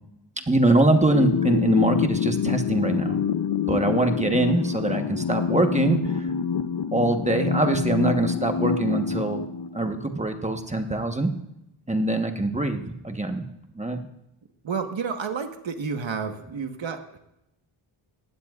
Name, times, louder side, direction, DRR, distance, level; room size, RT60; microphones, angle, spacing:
voice 1, 0.5-3.2 3.7-6.3 6.9-9.4 9.7-11.3 11.9-13.5 13.8-14.0, right 2 dB, 15° right, 5 dB, 1.1 m, -23 dB
sound 1, 1.1-10.1, left 7 dB, 55° left, 0.7 m, -26 dB
voice 2, 14.6-17.2, right 5 dB, 65° right, 6 dB, 1.4 m, -30 dB
20.0 x 16.0 x 2.4 m, 0.85 s
wide cardioid pair, 135°, 48 cm